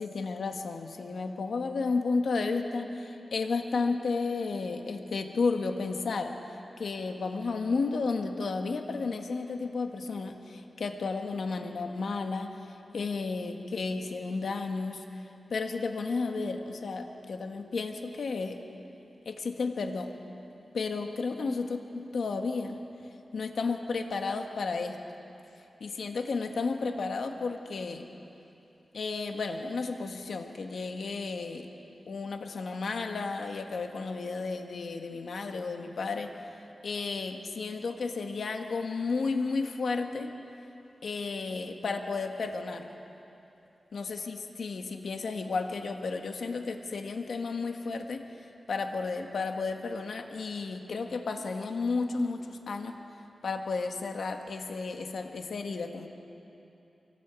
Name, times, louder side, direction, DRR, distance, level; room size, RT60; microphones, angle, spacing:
voice 1, 0.0-6.4 6.8-15.0 15.5-18.6 19.2-20.1 20.7-22.8 23.3-25.0 25.8-28.1 28.9-31.7 32.1-36.3 36.8-40.3 41.0-42.9 43.9-48.3 48.7-53.0 53.4-56.1, left 4 dB, 75° left, 4 dB, 1.5 m, -32 dB
24.0 x 17.5 x 8.3 m, 2.9 s
wide cardioid pair, 90°, 0 cm